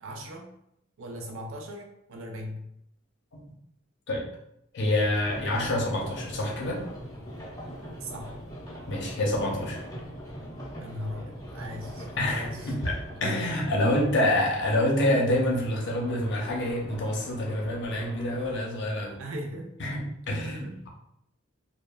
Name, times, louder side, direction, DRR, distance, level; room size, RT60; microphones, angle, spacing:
voice 1, 0.0-0.5 1.0-2.6 8.0-8.4 10.8-12.7 13.1-13.3 13.8-13.9 19.2-19.7 20.4-20.9, equal, 70° right, 3 dB, 0.5 m, -39 dB
voice 2, 4.7-6.8 8.9-9.8 12.2-19.2 19.8-20.9, left 1 dB, 60° left, -1 dB, 0.6 m, -27 dB
sound 1, 5.2-13.4 15.6-18.7, equal, 15° left, 0.6 m, -41 dB
2.9 x 2.0 x 2.2 m, 0.76 s
head